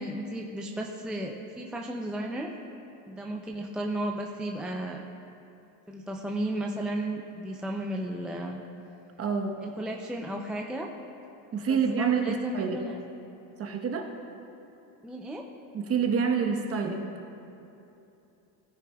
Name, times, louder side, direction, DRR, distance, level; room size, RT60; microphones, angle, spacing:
voice 1, 0.0-2.6 3.1-5.0 5.9-8.6 9.6-10.9 11.7-13.0 15.0-15.4, right 1 dB, ahead, 0 dB, 0.4 m, -34 dB
voice 2, 9.2-9.6 11.5-12.8 13.6-14.1 15.7-17.1, right 6 dB, 30° right, 3 dB, 1.1 m, -27 dB
17.0 x 9.7 x 2.3 m, 2.8 s
supercardioid pair, 120°, 45 cm